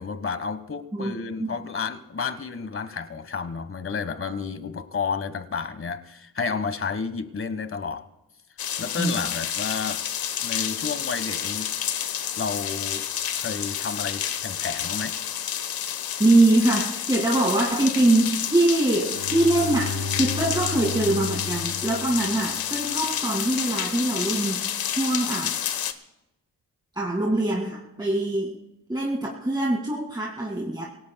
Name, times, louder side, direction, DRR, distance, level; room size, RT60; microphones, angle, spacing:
voice 1, 0.0-8.0 8.8-10.0 10.4-11.7 12.4-13.0 13.4-15.2, left 5 dB, 35° left, 1.3 m, -31 dB
sound 1, 8.6-25.9, left 9 dB, 70° left, 1.1 m, -30 dB
voice 2, 16.2-25.6 27.0-28.6 28.9-30.8, right 2 dB, 10° right, 2.2 m, -23 dB
Bowed string instrument, 19.0-22.7, left 4 dB, 50° right, 5.2 m, -33 dB
26.5 x 17.5 x 2.3 m
cardioid pair, 80°, 37 cm